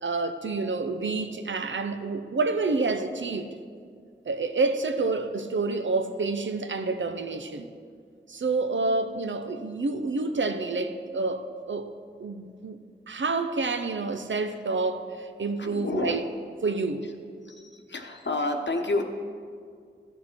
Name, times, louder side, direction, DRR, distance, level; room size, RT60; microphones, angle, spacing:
voice 1, 0.0-3.5 4.3-7.7 8.3-11.9 12.2-12.8 13.1-16.2 16.6-17.1, right 3 dB, 80° right, 0.7 m, -28 dB
voice 2, 15.6-16.2 17.5-19.0, left 2 dB, 70° left, 0.9 m, -29 dB
14.5 x 6.4 x 4.5 m
wide cardioid pair, 55°, 19 cm